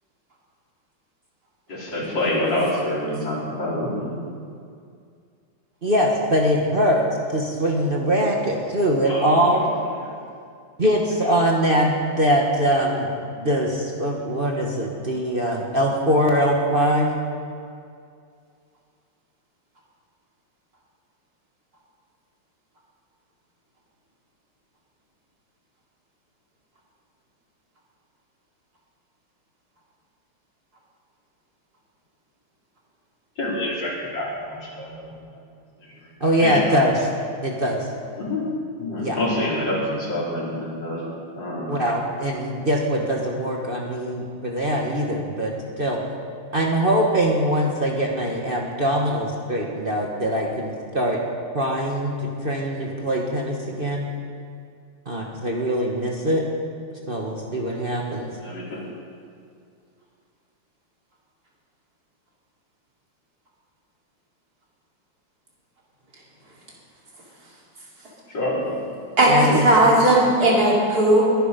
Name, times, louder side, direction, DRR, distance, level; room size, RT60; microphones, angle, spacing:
voice 1, 1.7-4.3 9.0-9.7 10.0-10.1 33.4-35.1 35.8-36.1 36.4-36.8 38.2-38.4 38.8-41.0 41.3-41.8 58.4-58.8 68.3-68.9, left 1 dB, 60° left, -7 dB, 4.9 m, -27 dB
voice 2, 5.8-7.1 7.3-9.6 10.8-13.1 13.4-17.1 36.2-37.1 37.4-37.9 39.0-39.2 41.7-46.0 46.5-51.2 51.5-54.1 55.1-56.4 57.1-58.3 69.3-69.7, equal, 30° right, -1 dB, 1.4 m, -22 dB
voice 3, 69.2-71.2, right 1 dB, 45° right, -5 dB, 3.8 m, -16 dB
22.0 x 10.0 x 5.3 m, 2.3 s
omnidirectional pair, 2.2 m